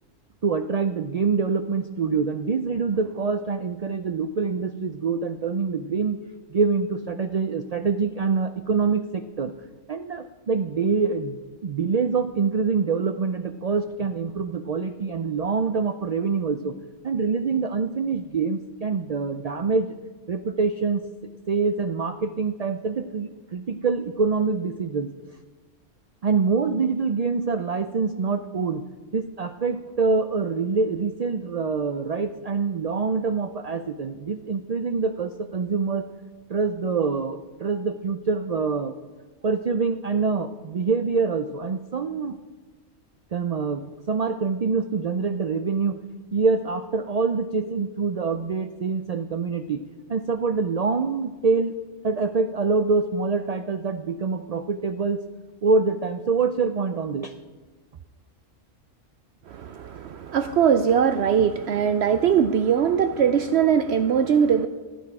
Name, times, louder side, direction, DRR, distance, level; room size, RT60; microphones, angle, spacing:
voice 1, 0.4-6.2 6.5-9.5 9.9-16.7 17.0-20.0 20.3-21.0 21.5-25.1 26.2-28.8 29.1-36.0 36.5-38.9 39.4-42.4 43.3-46.0 46.3-49.8 50.1-51.7 52.0-55.2 55.6-57.3, right 4 dB, 90° right, 9 dB, 0.3 m, -25 dB
voice 2, 59.5-64.7, right 7 dB, 65° right, 10 dB, 0.7 m, -21 dB
15.5 x 9.4 x 4.8 m, 1.3 s
omnidirectional pair, 1.3 m